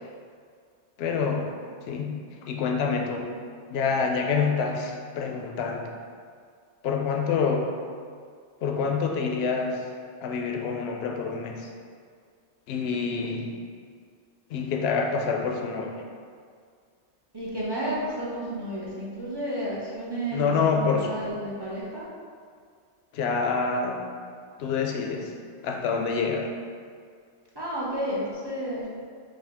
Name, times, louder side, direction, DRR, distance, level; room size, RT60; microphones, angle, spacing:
voice 1, 1.0-1.5 1.8-3.3 3.7-5.9 6.8-7.7 8.6-9.8 10.2-11.7 12.7-13.6 14.5-16.0 20.3-21.1 23.1-24.0 24.6-25.3 25.6-26.5, left 5 dB, 70° left, 2 dB, 0.7 m, -27 dB
voice 2, 17.3-22.1 27.5-28.8, right 1 dB, 30° right, -7 dB, 0.5 m, -32 dB
5.1 x 2.3 x 3.4 m, 2.1 s
omnidirectional pair, 1.2 m